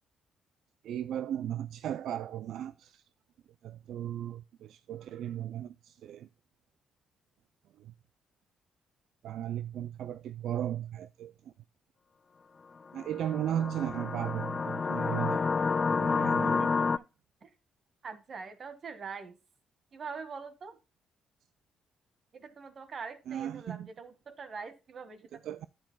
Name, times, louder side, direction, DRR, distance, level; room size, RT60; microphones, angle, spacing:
voice 1, 0.8-3.0 3.6-6.3 7.8-7.9 9.2-11.3 12.9-15.5 15.9-16.7 23.3-23.9 25.4-25.7, right 11 dB, 75° right, 0.4 m, -36 dB
sound 1, 13.0-17.0, left 4 dB, 35° left, 0.3 m, -29 dB
voice 2, 16.4-17.1 17.4-17.5 18.0-19.4 19.9-20.8 22.3-25.6, right 5 dB, 50° right, 1.7 m, -44 dB
9.4 x 9.2 x 2.3 m
cardioid pair, 90°, 0 cm